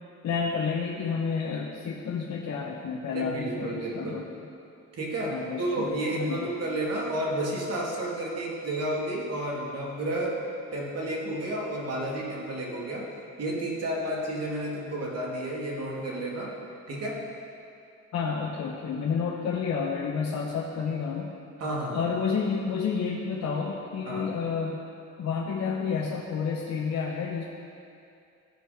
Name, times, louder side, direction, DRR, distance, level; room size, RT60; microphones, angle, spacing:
voice 1, 0.2-4.2 5.3-6.5 18.1-21.3 21.9-24.8 25.2-27.4, left 5 dB, 65° left, -3 dB, 1.1 m, -30 dB
voice 2, 3.1-4.2 4.9-10.4 10.7-13.1 13.4-16.6 16.9-17.2 21.6-22.1 24.0-24.3, right 1 dB, 55° right, -3 dB, 2.5 m, -31 dB
16.0 x 5.4 x 5.1 m, 2.6 s
cardioid pair, 90°, 30 cm